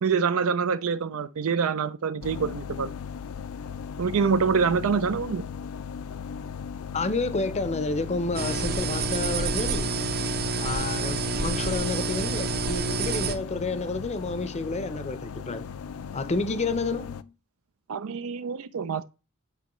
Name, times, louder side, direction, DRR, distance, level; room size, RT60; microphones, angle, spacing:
voice 1, 0.0-2.9 4.0-5.4 17.9-19.0, right 5 dB, 65° right, 0.4 m, -25 dB
sound 1, 2.2-17.2, left 6 dB, 70° left, 0.4 m, -37 dB
voice 2, 6.9-10.0 10.6-15.7 16.1-17.3, left 3 dB, 30° left, 0.6 m, -30 dB
sound 2, 8.3-13.3, right 4 dB, 45° right, 0.8 m, -28 dB
8.5 x 5.0 x 3.0 m
head